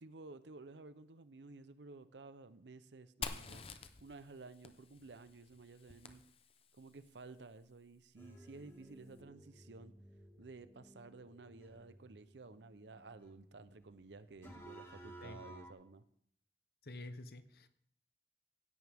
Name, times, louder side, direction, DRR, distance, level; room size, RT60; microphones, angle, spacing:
voice 1, 0.0-3.6 4.0-6.2 6.7-9.9 10.4-16.0, right 3 dB, 85° right, 14 dB, 0.7 m, -54 dB
Fire, 3.2-6.9, left 5 dB, 35° left, 0.7 m, -48 dB
sound 1, 8.2-15.7, right 1 dB, 15° left, 1.9 m, -57 dB
voice 2, 16.8-17.7, left 2 dB, 60° left, 11 dB, 0.9 m, -49 dB
16.0 x 11.0 x 3.6 m, 0.69 s
head